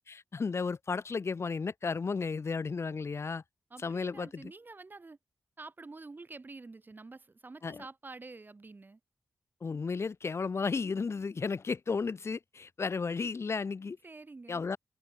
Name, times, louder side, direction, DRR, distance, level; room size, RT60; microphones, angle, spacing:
voice 1, 0.1-3.4 3.8-4.5 7.6-7.8 9.6-14.0 14.5-14.8, left 4 dB, 55° left, 1.1 m, -33 dB
voice 2, 3.7-5.2 5.6-9.0 14.0-14.7, right 3 dB, 35° right, 1.4 m, -48 dB
wide cardioid pair, 90°, 6 cm